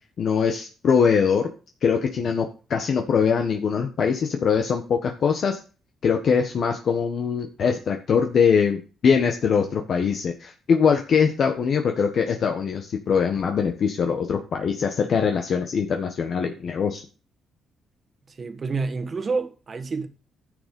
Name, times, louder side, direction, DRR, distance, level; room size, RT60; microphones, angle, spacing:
voice 1, 0.2-1.5 1.8-5.6 6.0-17.0, left 6 dB, 55° left, 1.5 m, -22 dB
voice 2, 18.3-20.1, right 4 dB, 40° right, 1.6 m, -28 dB
11.0 x 6.6 x 5.4 m
cardioid pair, 90°, 0 cm